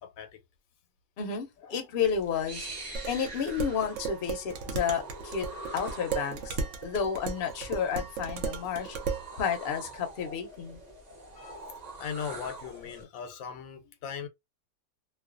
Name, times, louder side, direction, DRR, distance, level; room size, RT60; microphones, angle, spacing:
voice 1, 0.0-0.4 1.6-1.8 11.4-11.5 12.0-14.3, left 7 dB, 85° left, 1.0 m, -39 dB
voice 2, 1.2-2.7 3.0-5.5 5.7-9.0 9.3-10.8, left 7 dB, 55° left, 0.7 m, -31 dB
sound 1, 2.0-13.0, right 2 dB, 40° right, 0.6 m, -45 dB
Dishes pots and pans, 3.0-9.3, right 5 dB, 70° right, 0.9 m, -35 dB
2.4 x 2.2 x 2.4 m
omnidirectional pair, 1.4 m